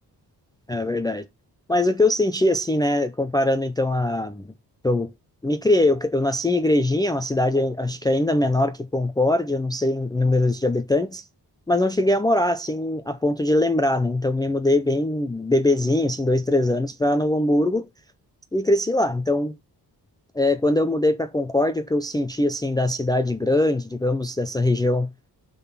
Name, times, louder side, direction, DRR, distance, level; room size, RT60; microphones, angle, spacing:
voice 1, 0.7-1.3 1.7-4.5 4.8-5.1 5.4-11.2 11.7-17.9 18.5-19.5 20.3-25.1, left 1 dB, 10° left, 0.4 m, -22 dB
6.8 x 3.9 x 5.9 m
wide cardioid pair, 120°, 40 cm